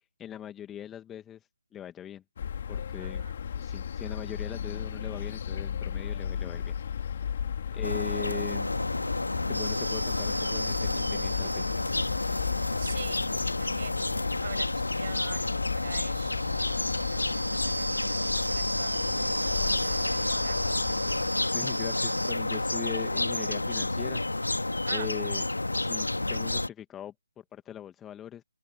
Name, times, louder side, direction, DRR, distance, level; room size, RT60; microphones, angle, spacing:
voice 1, 0.2-1.5 1.7-2.2 2.7-3.3 3.6-6.8 7.7-8.7 9.5-12.1 21.4-24.5 24.9-25.5 25.7-28.4, left 10 dB, 10° left, 2.0 m, -41 dB
sound 1, 2.4-21.3, left 8 dB, 40° left, 3.2 m, -35 dB
voice 2, 3.0-3.3 7.7-8.0 12.8-20.6 24.8-25.1, right 8 dB, 35° right, 6.4 m, -45 dB
sound 2, 7.8-26.7, left 2 dB, 75° left, 2.4 m, -30 dB
sound 3, 9.5-22.3, right 1 dB, 85° right, 3.0 m, -37 dB
open air
figure-of-eight pair, 145°, 0 cm